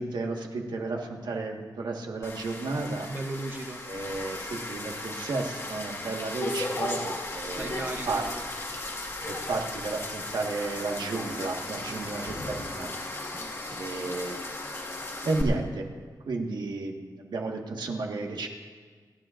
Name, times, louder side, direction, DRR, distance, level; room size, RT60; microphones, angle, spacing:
voice 1, 0.0-3.1 3.9-8.3 9.3-12.9 13.8-14.4 15.2-15.9 16.3-18.5, right 3 dB, 85° right, 1 dB, 1.5 m, -33 dB
sound 1, 2.2-15.4, left 2 dB, 40° left, 1.6 m, -36 dB
voice 2, 3.1-3.8 7.4-8.5 11.9-12.2 13.3-14.1, right 2 dB, 25° right, 4 dB, 0.7 m, -38 dB
29.0 x 10.0 x 2.5 m, 1.5 s
wide cardioid pair, 150°, 7 cm